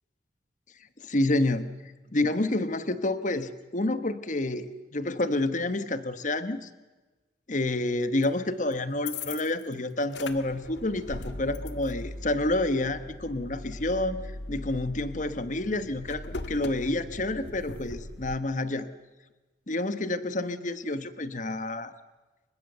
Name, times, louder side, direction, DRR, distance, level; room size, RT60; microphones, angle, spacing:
voice 1, 1.0-1.7 2.1-6.7 7.5-18.9 19.7-21.9, left 2 dB, 45° left, 12 dB, 1.2 m, -29 dB
sound 1, 8.2-8.3 8.7-9.7 10.0-18.4, left 2 dB, 80° left, 1.6 m, -40 dB
28.5 x 24.5 x 6.9 m, 1.2 s
head